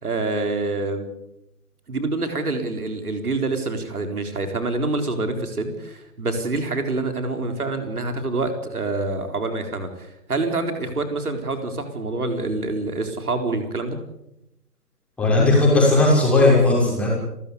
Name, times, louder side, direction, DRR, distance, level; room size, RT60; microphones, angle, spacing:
voice 1, 0.0-1.1 1.9-14.0, right 3 dB, 65° right, 6 dB, 4.2 m, -26 dB
voice 2, 15.2-17.1, left 2 dB, ahead, -4 dB, 6.1 m, -16 dB
30.0 x 14.0 x 8.3 m, 0.85 s
figure-of-eight pair, 150°, 48 cm